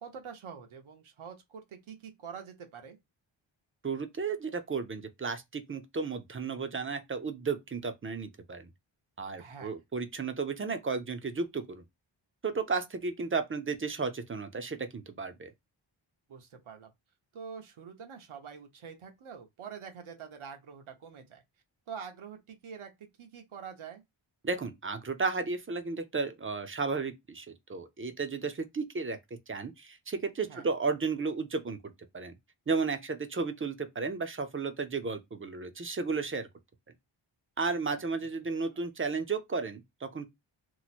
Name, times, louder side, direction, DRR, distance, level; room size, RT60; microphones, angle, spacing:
voice 1, 0.0-3.0 9.4-9.7 16.3-16.9 17.3-21.4 21.9-24.0 30.5-30.7 37.7-38.0 38.6-38.8, right 6 dB, 80° right, 1.0 m, -46 dB
voice 2, 3.8-8.7 9.2-11.8 12.4-15.5 24.4-29.2 29.5-31.8 32.1-32.3 32.7-36.5 37.6-40.3, right 4 dB, 25° right, 0.5 m, -33 dB
2.9 x 2.0 x 4.1 m
wide cardioid pair, 135°, 49 cm